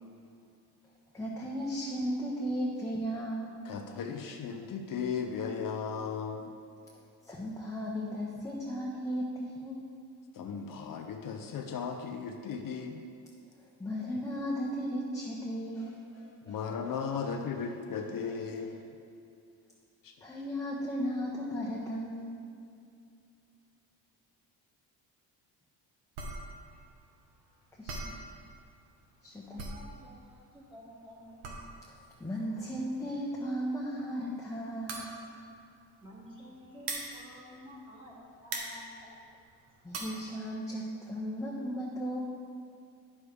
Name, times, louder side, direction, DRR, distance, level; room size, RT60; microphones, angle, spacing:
voice 1, 1.1-3.6 3.9-4.0 7.3-9.8 13.8-16.9 17.2-17.3 18.5-18.7 20.2-22.4 27.8-28.2 29.2-29.6 32.2-35.1 39.8-42.2, equal, 5° left, -4 dB, 0.9 m, -36 dB
voice 2, 3.6-6.4 10.4-13.0 16.5-18.8 20.0-20.1, left 6 dB, 55° left, 4 dB, 0.7 m, -36 dB
sound 1, 26.2-38.1 38.4-40.2, right 3 dB, 85° right, 1.2 m, -42 dB
voice 3, 29.5-31.6 36.0-39.1 39.9-40.2, equal, 15° right, -5 dB, 2.1 m, -51 dB
9.4 x 7.0 x 3.3 m, 2.5 s
cardioid pair, 90°, 41 cm